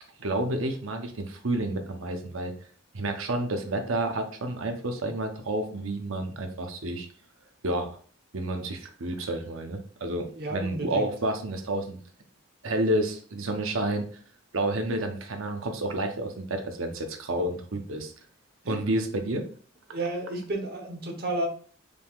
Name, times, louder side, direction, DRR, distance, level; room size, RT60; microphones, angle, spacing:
voice 1, 0.2-2.5 2.9-7.1 7.6-7.9 8.3-10.3 10.5-12.0 12.6-14.1 14.5-18.1 18.7-19.4, right 1 dB, 75° right, 5 dB, 0.8 m, -30 dB
voice 2, 10.4-11.1 18.6-18.8 19.9-21.5, right 2 dB, 50° right, 2 dB, 1.1 m, -32 dB
5.0 x 3.7 x 2.4 m, 0.43 s
head